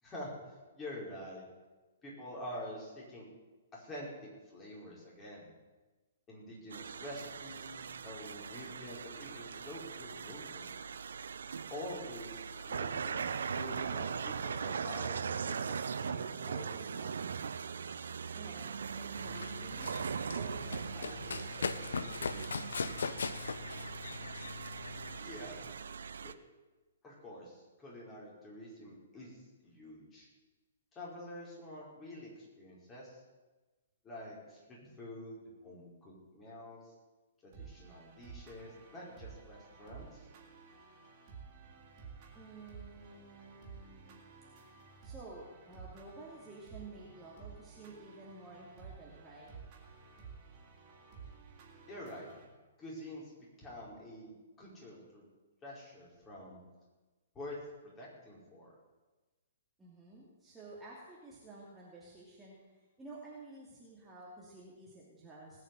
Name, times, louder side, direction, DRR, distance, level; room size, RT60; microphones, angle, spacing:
voice 1, 0.0-1.4 2.0-3.3 3.7-5.5 6.3-10.7 11.7-13.3 13.6-17.2 25.2-25.7 26.2-26.3 27.0-30.3 30.9-33.2 34.0-36.9 37.4-40.3 51.9-52.3 52.8-54.3 54.6-55.2 55.6-56.6 57.3-57.6 57.8-58.7, left 1 dB, 20° left, -4 dB, 4.9 m, -47 dB
sound 1, 6.7-26.3, right 6 dB, 60° right, 0.6 m, -40 dB
voice 2, 18.3-20.0 20.3-22.5 42.3-44.2 45.0-49.5 59.8-65.6, right 2 dB, 10° right, -6 dB, 2.7 m, -52 dB
Run, 19.2-25.2, left 5 dB, 65° left, 0.7 m, -40 dB
sound 2, 37.5-52.5, right 5 dB, 35° right, 3.4 m, -53 dB
19.5 x 6.7 x 7.9 m, 1.2 s
figure-of-eight pair, 120°, 0 cm